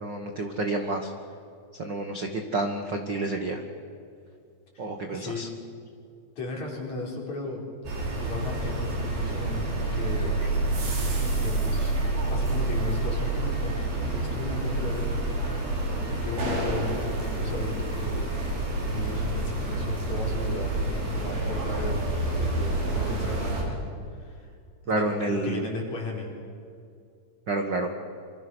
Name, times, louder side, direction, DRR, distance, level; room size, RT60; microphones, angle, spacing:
voice 1, 0.0-1.1 1.8-3.6 4.8-5.5 24.9-25.7 27.5-27.9, right 2 dB, 45° right, 4 dB, 1.4 m, -29 dB
voice 2, 4.7-5.5 6.4-7.6 8.2-10.3 10.8-11.0 11.3-11.9 12.3-15.1 15.4-15.6 16.1-18.3 18.8-22.0 22.4-23.9 24.1-24.5 24.9-26.3, left 3 dB, 50° left, -1 dB, 5.6 m, -36 dB
sound 1, 7.9-23.6, right 2 dB, 75° right, 6.6 m, -28 dB
28.5 x 26.0 x 6.3 m, 2.3 s
omnidirectional pair, 4.3 m